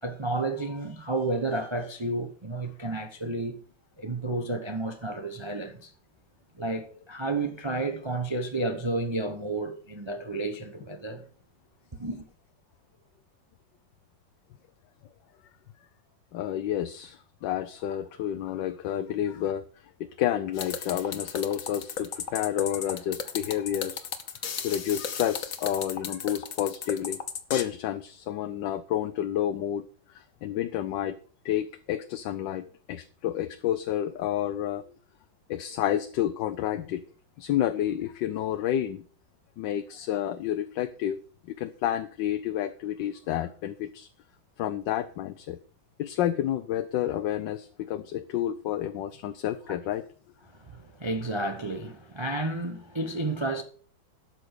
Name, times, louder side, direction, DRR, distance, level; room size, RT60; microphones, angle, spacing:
voice 1, 0.0-3.6 4.0-5.9 6.6-11.2 12.0-12.2 50.7-53.6, right 2 dB, 25° right, 0.6 m, -31 dB
voice 2, 16.3-19.6 20.0-24.1 24.6-27.2 27.5-31.2 31.4-34.8 35.5-37.0 37.4-39.0 39.6-41.2 41.5-44.1 44.6-45.6 46.0-50.1, left 11 dB, 75° left, 1.3 m, -30 dB
sound 1, 20.6-27.6, left 7 dB, 50° left, 1.4 m, -34 dB
12.5 x 6.2 x 6.5 m
omnidirectional pair, 2.1 m